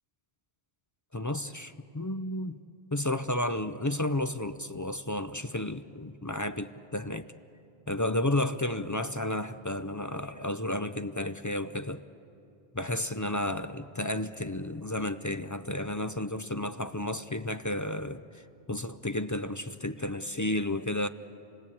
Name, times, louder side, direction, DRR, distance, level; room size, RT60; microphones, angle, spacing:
voice 1, 1.1-2.6 2.9-7.3 7.9-12.0 12.7-18.4 18.7-21.1, left 1 dB, 25° left, 0.4 m, -32 dB
29.0 x 19.0 x 8.5 m
omnidirectional pair, 1.1 m